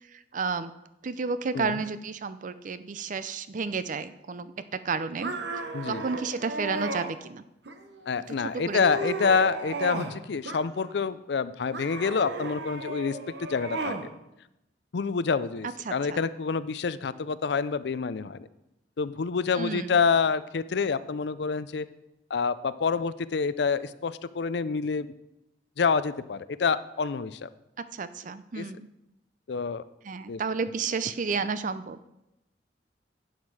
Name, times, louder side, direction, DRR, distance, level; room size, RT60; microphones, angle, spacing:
voice 1, 0.1-0.7 1.0-5.3 5.9-7.4 8.3-8.8 15.8-16.3 19.5-20.0 27.9-28.9 30.0-32.0, right 4 dB, 45° right, 13 dB, 0.5 m, -32 dB
sound 1, 5.2-7.1 7.6-8.2 8.6-10.2 10.4-11.1 11.7-14.1, right 2 dB, 70° right, 1.1 m, -35 dB
voice 2, 5.7-6.0 8.1-14.0 14.9-18.5 19.0-21.9 22.3-25.1 25.8-27.5 28.6-28.7 29.5-29.8 30.3-30.4, left 5 dB, 65° left, 15 dB, 0.5 m, -27 dB
11.5 x 8.1 x 4.8 m, 0.90 s
head